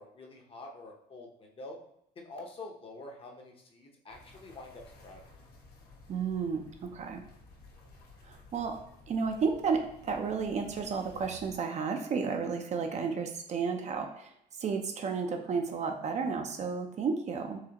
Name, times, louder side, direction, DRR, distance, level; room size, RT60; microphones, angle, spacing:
voice 1, 0.0-1.8 2.2-5.2, left 2 dB, 35° left, 1 dB, 0.7 m, -47 dB
sound 1, 4.1-11.6, left 2 dB, 70° left, 1.0 m, -55 dB
voice 2, 6.1-7.2 8.2-8.8 9.1-14.3 14.6-17.6, right 5 dB, 45° right, 4 dB, 0.5 m, -32 dB
4.8 x 2.1 x 2.8 m, 0.76 s
cardioid pair, 110°, 17 cm